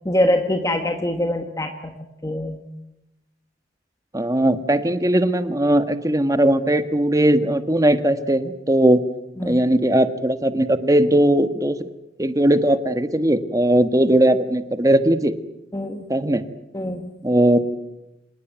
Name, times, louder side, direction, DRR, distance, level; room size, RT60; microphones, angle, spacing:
voice 1, 0.0-2.0 2.2-2.6 9.4-9.6 15.7-16.1 16.7-17.1, left 1 dB, 20° left, 5 dB, 1.5 m, -24 dB
voice 2, 4.1-9.0 9.4-11.9 12.2-15.3 16.1-16.4 17.2-17.6, right 1 dB, 20° right, 10 dB, 1.5 m, -18 dB
26.5 x 19.5 x 9.3 m, 0.91 s
head